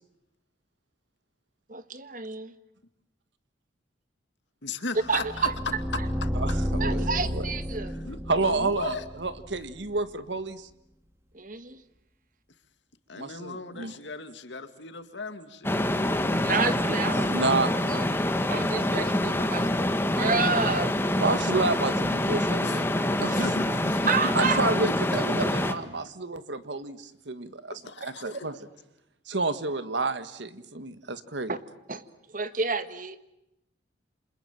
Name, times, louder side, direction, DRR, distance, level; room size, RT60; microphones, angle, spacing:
voice 1, 1.7-2.5 5.1-5.5 6.8-7.9 11.3-11.8 16.4-17.2 17.9-18.0 18.5-21.0 23.3-23.5 24.0-24.6 31.5-31.6 31.9-32.0 32.3-33.2, right 4 dB, 45° right, 11 dB, 1.6 m, -29 dB
voice 2, 4.6-5.5 6.2-6.3 8.0-9.1 13.1-15.9 21.2-21.4 22.6-24.1 24.4-24.5 27.8-28.5, left 3 dB, 70° left, 9 dB, 2.4 m, -37 dB
sound 1, 5.0-10.0, equal, 15° right, 2.3 m, -31 dB
voice 3, 6.3-7.5 8.3-10.7 13.2-13.9 16.9-17.7 21.2-22.8 23.2-23.4 24.3-28.6 29.3-31.5, right 3 dB, 70° right, 12 dB, 1.6 m, -30 dB
sound 2, 15.6-25.7, left 1 dB, 10° left, 1.6 m, -26 dB
29.0 x 27.0 x 7.5 m, 0.86 s
head